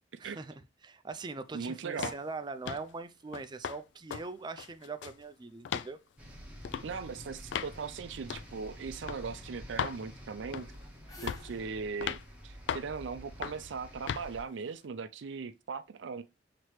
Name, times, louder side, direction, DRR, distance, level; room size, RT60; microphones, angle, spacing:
voice 1, 0.2-6.0, right 3 dB, 25° right, 0.4 m, -42 dB
voice 2, 1.5-2.1 6.8-10.7 11.2-16.2, right 5 dB, 90° right, 0.4 m, -39 dB
sound 1, 2.0-2.2 2.6-2.9 3.3-3.8 4.1-4.3 4.6-5.2 5.6-5.9 6.6-6.9 7.5-7.7 8.3-8.5 9.1-9.2 9.8-10.0 10.5-10.8 11.3-11.5 12.0-12.2 12.7-12.9 13.4-13.6 14.1-14.3, left 8 dB, 75° left, 0.3 m, -36 dB
sound 2, 6.2-14.4, equal, 10° right, 1.4 m, -49 dB
sound 3, 10.9-13.7, left 4 dB, 20° left, 1.0 m, -55 dB
5.8 x 2.9 x 3.1 m
head